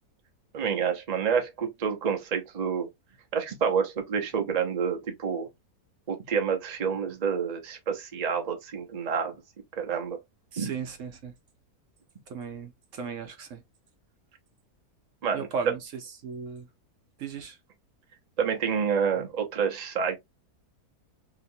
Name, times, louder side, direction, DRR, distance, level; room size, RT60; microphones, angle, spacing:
voice 1, 0.5-2.9 3.3-5.5 6.1-9.3 9.8-10.2 10.6-10.7 15.2-15.5 18.4-20.2, right 6 dB, 45° right, 0.5 m, -28 dB
voice 2, 10.5-11.3 12.3-13.6 15.3-16.7 17.2-17.6, right 6 dB, 65° right, 0.9 m, -36 dB
2.9 x 2.8 x 2.7 m
omnidirectional pair, 1.6 m